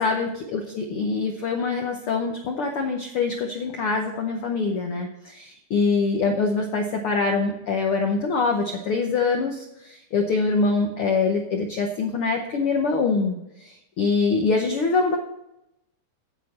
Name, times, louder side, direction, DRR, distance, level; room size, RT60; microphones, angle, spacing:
voice 1, 0.0-15.2, left 4 dB, 70° left, 2 dB, 1.3 m, -24 dB
9.2 x 8.1 x 4.1 m, 0.86 s
omnidirectional pair, 3.7 m